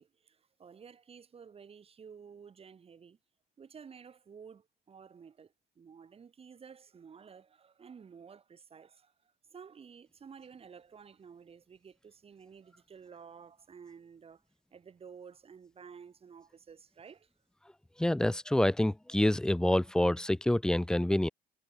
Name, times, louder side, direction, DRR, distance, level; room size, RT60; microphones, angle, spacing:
voice 1, 0.0-3.2 3.6-14.4 14.7-17.3, right 6 dB, 35° right, 3.2 m, -53 dB
voice 2, 18.0-21.3, left 1 dB, 5° left, 0.4 m, -27 dB
cardioid pair, 110°, 17 cm